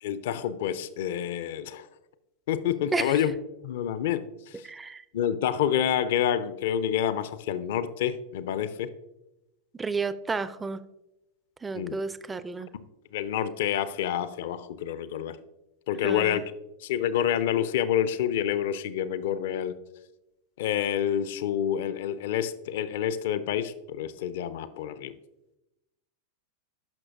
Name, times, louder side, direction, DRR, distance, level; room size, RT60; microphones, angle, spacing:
voice 1, 0.0-1.9 2.5-3.3 3.6-4.2 5.1-8.9 11.7-11.9 13.1-15.4 15.9-16.4 16.8-19.8 20.6-25.1, left 10 dB, 55° left, 14 dB, 0.5 m, -28 dB
voice 2, 4.6-5.0 9.8-10.8 11.6-12.7 16.0-16.4, right 4 dB, 15° right, 15 dB, 0.4 m, -31 dB
10.5 x 6.1 x 2.5 m, 0.94 s
figure-of-eight pair, 90°, 0 cm